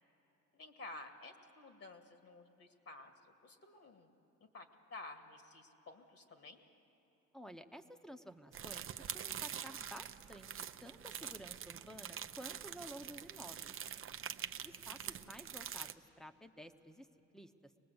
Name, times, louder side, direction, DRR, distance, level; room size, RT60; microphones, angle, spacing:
voice 1, 0.5-4.1 4.4-6.6, left 2 dB, 50° left, 5 dB, 2.0 m, -53 dB
voice 2, 7.3-13.7 14.6-17.1 17.3-17.7, equal, ahead, 8 dB, 0.9 m, -53 dB
sound 1, 8.5-15.9, right 9 dB, 45° right, 0.7 m, -45 dB
24.5 x 20.0 x 8.0 m, 2.9 s
cardioid pair, 90°, 30 cm